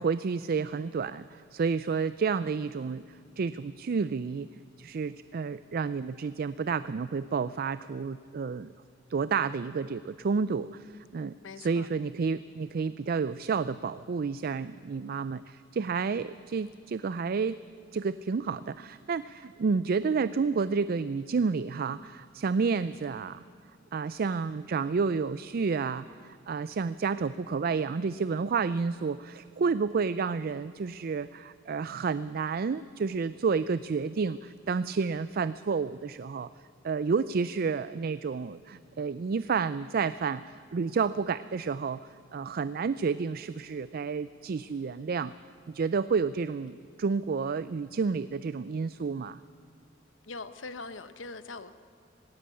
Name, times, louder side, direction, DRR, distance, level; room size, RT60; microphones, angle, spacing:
voice 1, 0.0-4.5 4.8-8.7 9.1-17.6 17.9-23.4 23.9-36.5 36.8-45.3 45.7-49.4, right 5 dB, 50° right, 15 dB, 0.4 m, -30 dB
voice 2, 11.4-11.9 50.2-51.7, left 3 dB, 85° left, 12 dB, 1.0 m, -42 dB
18.5 x 17.5 x 8.4 m, 2.3 s
head